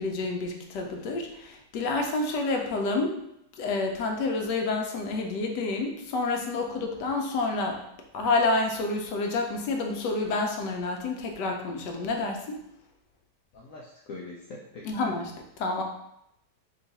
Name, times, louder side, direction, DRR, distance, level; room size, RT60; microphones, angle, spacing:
voice 1, 0.0-3.2 3.6-7.8 8.1-12.6 14.8-15.2 15.6-15.8, left 3 dB, 85° left, 2 dB, 1.3 m, -28 dB
voice 2, 13.5-15.0, left 3 dB, 65° left, -3 dB, 0.8 m, -43 dB
3.7 x 2.4 x 4.0 m, 0.79 s
omnidirectional pair, 1.8 m